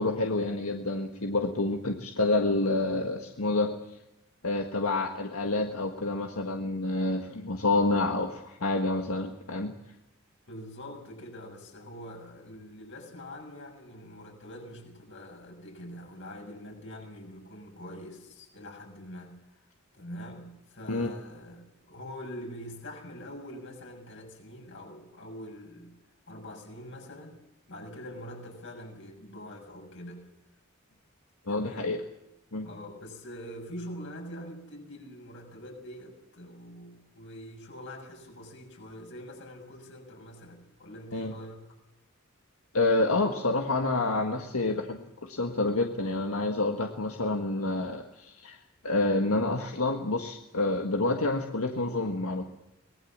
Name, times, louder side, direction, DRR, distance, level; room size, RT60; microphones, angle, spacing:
voice 1, 0.0-3.8 4.4-9.7 20.9-21.1 31.5-32.0 32.5-32.7 41.1-41.3 42.7-48.6 48.8-52.4, left 2 dB, 85° left, 4 dB, 1.7 m, -28 dB
voice 2, 10.5-19.6 19.9-25.9 26.3-27.4 27.7-30.2 31.5-32.0 32.6-41.8 44.6-44.7, equal, 60° left, 2 dB, 6.6 m, -44 dB
24.0 x 19.5 x 7.4 m, 0.90 s
head